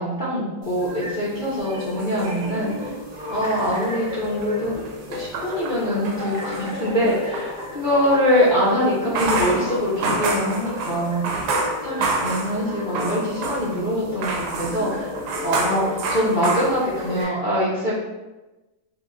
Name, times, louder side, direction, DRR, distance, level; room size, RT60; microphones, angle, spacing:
voice 1, 0.0-2.9 3.3-11.4 11.8-15.1 15.4-17.9, equal, 75° left, -9 dB, 0.4 m, -23 dB
sound 1, 0.6-17.2, left 2 dB, 45° right, 0.5 m, -34 dB
sound 2, 1.8-3.0 3.4-7.5 9.0-13.9 14.2-17.2, right 3 dB, 70° right, 1.1 m, -28 dB
2.9 x 2.8 x 3.7 m, 1.1 s
omnidirectional pair, 2.0 m